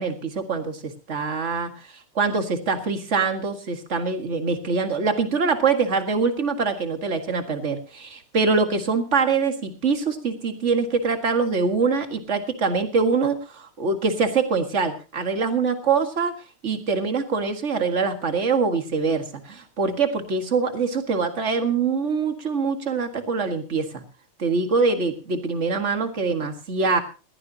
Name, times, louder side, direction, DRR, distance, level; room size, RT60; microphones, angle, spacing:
voice 1, 0.0-16.3 16.6-24.0 24.4-27.0, right 4 dB, 30° right, 7 dB, 1.6 m, -24 dB
20.5 x 16.0 x 2.8 m, 0.32 s
omnidirectional pair, 3.4 m